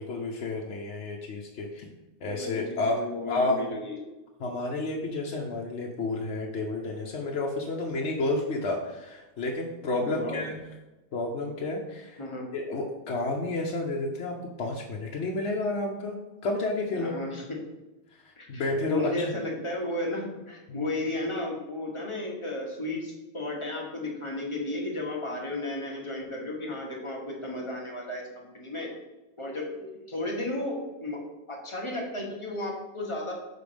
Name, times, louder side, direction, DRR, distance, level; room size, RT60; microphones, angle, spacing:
voice 1, 0.0-1.8 2.2-3.0 3.3-3.6 4.4-10.6 11.1-12.2 12.5-16.2 16.4-17.3 18.1-19.3 20.7-20.8, left 2 dB, 80° left, -1 dB, 1.1 m, -31 dB
voice 2, 2.2-4.1 10.0-10.4 12.2-12.5 17.0-17.6 18.4-28.9 29.4-31.2 31.5-33.3, left 2 dB, 25° left, -2 dB, 1.4 m, -34 dB
6.8 x 4.2 x 5.1 m, 1.1 s
omnidirectional pair, 1.1 m